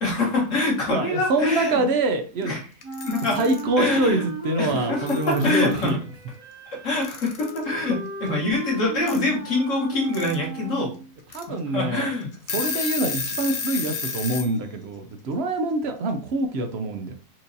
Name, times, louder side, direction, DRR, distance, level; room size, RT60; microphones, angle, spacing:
voice 1, 0.0-1.8 2.5-2.6 3.0-3.4 3.8-4.3 4.6-6.0 6.8-10.9 11.7-12.6, left 2 dB, 55° left, -2 dB, 1.6 m, -25 dB
voice 2, 0.9-2.6 3.3-6.0 11.3-12.1 12.5-17.1, right 2 dB, 65° right, 6 dB, 0.6 m, -25 dB
Alarm / Clock, 2.8-3.6 4.7-4.8 5.1-5.9 7.0-7.6 9.1-9.2 9.9-10.3 10.8-10.9 11.3-11.4 12.0-12.1 12.3-14.5, left 5 dB, 75° left, 0.4 m, -31 dB
Wind instrument woodwind instrument, 2.8-11.1, right 2 dB, 90° right, 1.6 m, -36 dB
4.4 x 2.6 x 2.6 m, 0.36 s
omnidirectional pair, 1.6 m